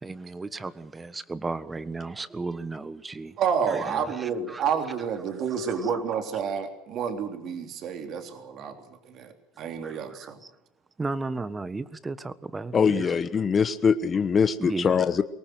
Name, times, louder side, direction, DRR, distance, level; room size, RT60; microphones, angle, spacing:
voice 1, 0.0-3.4 3.7-4.6 9.8-10.3 11.0-13.2 14.6-14.9, right 3 dB, 20° right, 1.4 m, -34 dB
voice 2, 3.4-10.4, right 6 dB, 55° right, 3.4 m, -30 dB
voice 3, 12.7-15.2, left 6 dB, 35° left, 1.1 m, -22 dB
23.0 x 19.0 x 7.8 m
hypercardioid pair, 80°, 0 cm